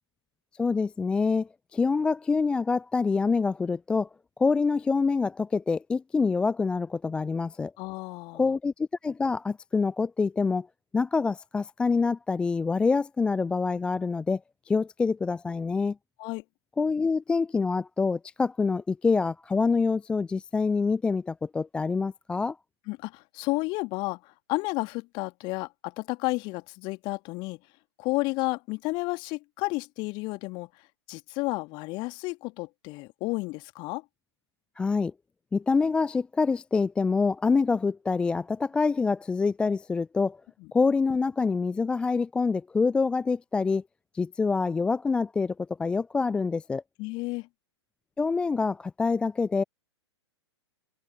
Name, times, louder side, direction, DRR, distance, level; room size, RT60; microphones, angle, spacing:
voice 1, 0.6-4.1 4.4-7.7 8.3-10.7 10.9-14.4 14.7-16.0 16.8-22.6 34.8-35.1 35.5-40.4 40.7-43.8 44.1-45.5 45.8-46.8 48.2-49.6, left 4 dB, 5° left, 0.4 m, -26 dB
voice 2, 7.8-8.5 16.2-16.4 22.9-27.6 28.0-30.7 31.1-34.0 40.6-40.7 47.0-47.5, left 24 dB, 30° left, 2.1 m, -32 dB
figure-of-eight pair, 110°, 15 cm